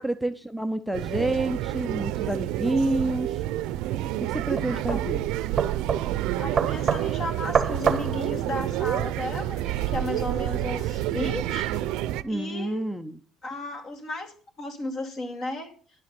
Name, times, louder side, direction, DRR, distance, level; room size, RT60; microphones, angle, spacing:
voice 1, 0.0-3.4 4.2-5.2 12.2-13.2, right 2 dB, ahead, 10 dB, 0.5 m, -28 dB
sound 1, 0.9-12.2, right 14 dB, 80° right, 0.5 m, -29 dB
sound 2, 3.5-9.1, right 6 dB, 25° right, 0.9 m, -29 dB
voice 2, 6.4-11.7 12.3-12.8 13.4-15.7, left 2 dB, 40° left, 4 dB, 2.2 m, -34 dB
sound 3, 8.4-12.2, left 2 dB, 75° left, 2.4 m, -47 dB
10.5 x 7.7 x 6.8 m, 0.42 s
cardioid pair, 145°, 0 cm